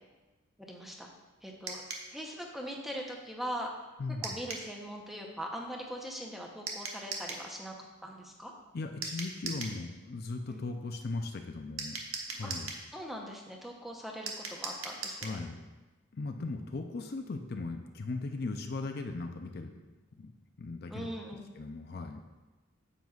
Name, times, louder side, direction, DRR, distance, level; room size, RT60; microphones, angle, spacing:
voice 1, 0.6-1.1 1.4-1.8 2.1-3.7 4.2-8.5 10.5-10.6 12.4-12.5 12.9-15.4 16.4-16.5 20.9-21.5, equal, ahead, 0 dB, 0.8 m, -41 dB
sound 1, 1.7-2.1 4.2-4.7 6.7-7.5 9.0-9.8 11.8-12.8 14.3-15.4, right 4 dB, 85° right, 1.1 m, -39 dB
voice 2, 4.0-4.4 8.7-12.0 12.3-12.7 15.1-15.6 16.1-19.7 20.2-20.3 20.6-21.1 21.6-22.2, left 3 dB, 50° left, 5 dB, 0.5 m, -38 dB
9.2 x 7.7 x 2.4 m, 1.2 s
head